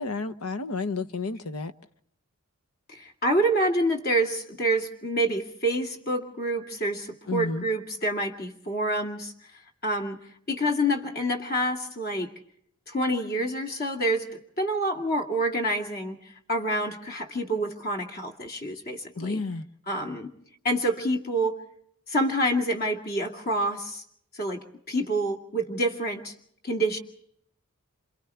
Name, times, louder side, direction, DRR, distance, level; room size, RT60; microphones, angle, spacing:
voice 1, 0.0-1.7 7.3-7.7 19.2-19.6, left 3 dB, 85° left, 12 dB, 1.1 m, -31 dB
voice 2, 2.9-9.3 9.8-10.2 10.5-12.3 12.9-16.2 16.5-19.4 19.9-20.3 20.6-21.6 22.1-24.0 24.3-26.3 26.6-27.0, right 1 dB, 45° left, 2 dB, 2.4 m, -27 dB
28.0 x 27.5 x 3.4 m, 0.68 s
head